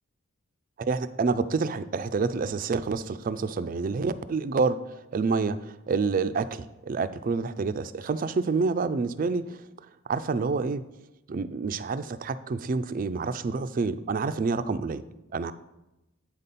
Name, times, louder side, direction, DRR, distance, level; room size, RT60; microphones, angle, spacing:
voice 1, 0.8-9.6 10.1-10.8 11.3-15.0 15.3-15.5, right 4 dB, 40° right, 13 dB, 0.3 m, -28 dB
8.2 x 4.1 x 5.3 m, 0.94 s
head